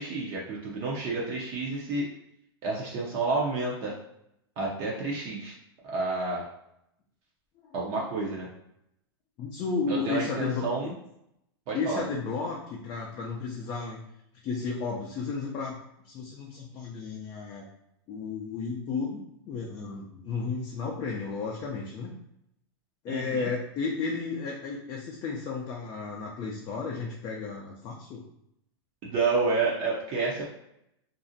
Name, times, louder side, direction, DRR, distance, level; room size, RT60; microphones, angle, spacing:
voice 1, 0.0-2.0 2.6-3.9 4.6-5.5 5.8-6.4 7.7-8.5 9.9-10.9 11.7-12.0 23.1-23.5 29.0-30.5, right 3 dB, 40° right, -4 dB, 0.6 m, -29 dB
voice 2, 9.4-10.7 11.7-14.0 14.4-15.8 16.0-17.7 18.1-22.1 23.0-28.2, left 4 dB, 35° left, -2 dB, 0.4 m, -33 dB
2.5 x 2.0 x 2.6 m, 0.78 s
hypercardioid pair, 120°, 13 cm